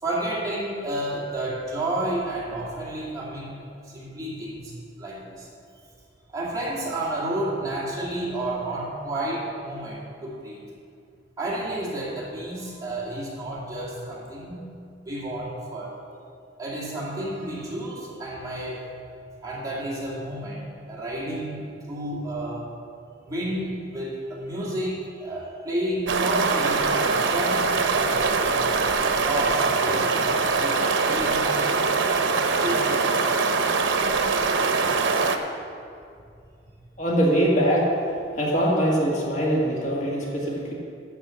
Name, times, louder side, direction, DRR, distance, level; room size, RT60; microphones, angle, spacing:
voice 1, 0.0-3.6 3.8-5.5 6.3-10.6 11.4-14.8 15.0-16.0 16.6-18.9 19.4-22.7 23.2-28.6 29.2-31.9 32.5-33.1, right 1 dB, 20° right, -6 dB, 2.3 m, -31 dB
sound 1, 26.1-35.4, right 4 dB, 85° right, 0.8 m, -23 dB
voice 2, 37.0-37.9 38.3-40.7, equal, 40° left, -4 dB, 1.9 m, -22 dB
12.0 x 4.8 x 7.6 m, 2.4 s
head